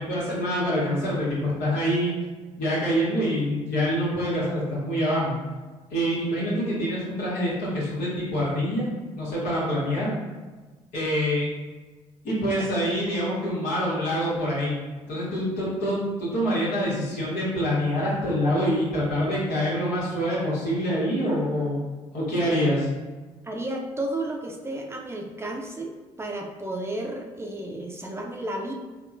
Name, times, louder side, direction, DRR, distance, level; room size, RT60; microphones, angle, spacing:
voice 1, 0.0-2.1 2.6-5.4 5.9-8.9 9.2-10.1 10.9-11.5 12.2-14.8 15.1-21.8 22.1-22.9, equal, 80° left, -7 dB, 1.4 m, -25 dB
voice 2, 23.4-25.9 26.2-28.7, right 1 dB, 20° right, 0 dB, 0.5 m, -32 dB
3.5 x 2.3 x 2.6 m, 1.3 s
supercardioid pair, 65°, 13 cm